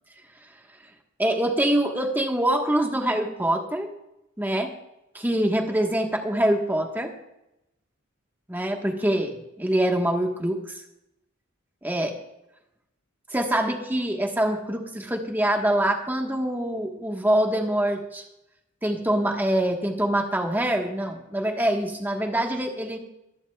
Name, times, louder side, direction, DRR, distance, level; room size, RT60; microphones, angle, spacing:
voice 1, 1.2-3.9 4.4-4.7 5.1-7.1 8.5-10.8 11.8-12.2 13.3-18.2 18.8-23.0, right 1 dB, 10° right, 2 dB, 1.4 m, -24 dB
24.5 x 11.0 x 2.4 m, 0.87 s
head